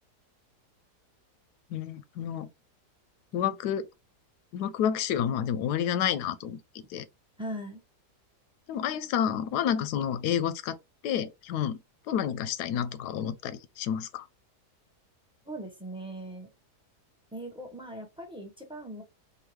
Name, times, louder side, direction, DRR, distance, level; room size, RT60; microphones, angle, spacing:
voice 1, 1.7-2.5 3.3-3.8 4.5-6.6 6.9-7.0 8.7-10.8 11.0-11.8 12.1-14.3, left 9 dB, 85° left, 1.2 m, -29 dB
voice 2, 7.4-7.8 15.4-16.5 17.3-19.0, right 1 dB, 5° right, 0.7 m, -39 dB
3.9 x 2.7 x 3.1 m
omnidirectional pair, 1.7 m